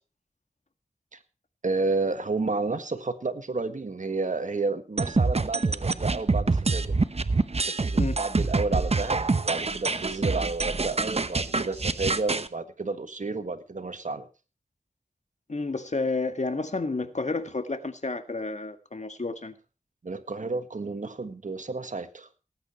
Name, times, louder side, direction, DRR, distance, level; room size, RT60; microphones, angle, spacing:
voice 1, 1.6-6.9 7.7-14.3 20.0-22.3, right 3 dB, 60° right, 8 dB, 1.6 m, -31 dB
sound 1, 5.0-12.5, right 3 dB, 45° right, 0.9 m, -26 dB
voice 2, 15.5-19.5, left 3 dB, 55° left, 8 dB, 1.8 m, -30 dB
19.0 x 9.0 x 4.4 m, 0.34 s
wide cardioid pair, 50°, 14 cm